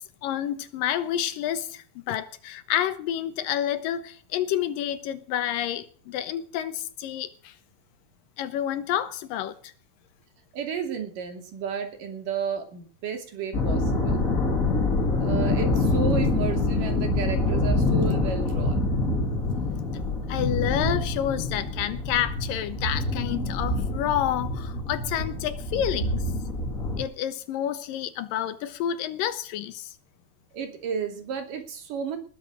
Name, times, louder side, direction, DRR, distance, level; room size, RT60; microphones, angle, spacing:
voice 1, 0.0-7.5 8.4-9.7 20.3-26.2 27.0-29.9, left 11 dB, 85° left, 2.8 m, -29 dB
voice 2, 10.5-14.2 15.2-18.8 30.5-32.2, right 7 dB, 75° right, 4.3 m, -32 dB
sound 1, 13.5-27.0, left 2 dB, 25° left, 2.6 m, -26 dB
19.5 x 8.3 x 6.2 m
omnidirectional pair, 3.8 m